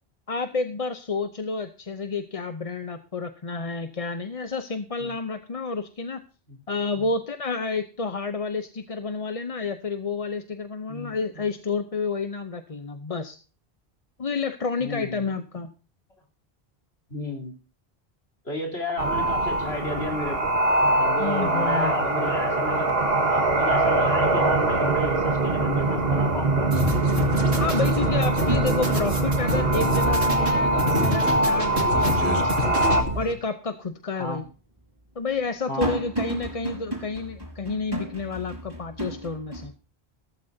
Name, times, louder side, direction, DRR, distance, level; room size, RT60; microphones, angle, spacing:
voice 1, 0.3-6.2 6.7-13.4 14.2-15.7 21.2-22.2 27.6-32.8 33.1-34.4 35.2-39.7, left 4 dB, 35° left, 9 dB, 0.8 m, -30 dB
voice 2, 10.9-11.5 14.8-15.3 17.1-17.5 18.5-20.5 21.0-22.9 23.3-26.7 34.2-34.4 35.7-36.0, left 2 dB, 75° left, 3 dB, 3.8 m, -32 dB
sound 1, 19.0-33.0, right 2 dB, 65° right, 2.0 m, -23 dB
sound 2, 26.7-33.3, equal, 85° right, 2.6 m, -28 dB
sound 3, 34.5-39.7, right 1 dB, 20° right, 5.5 m, -36 dB
16.0 x 14.5 x 2.8 m, 0.36 s
omnidirectional pair, 1.1 m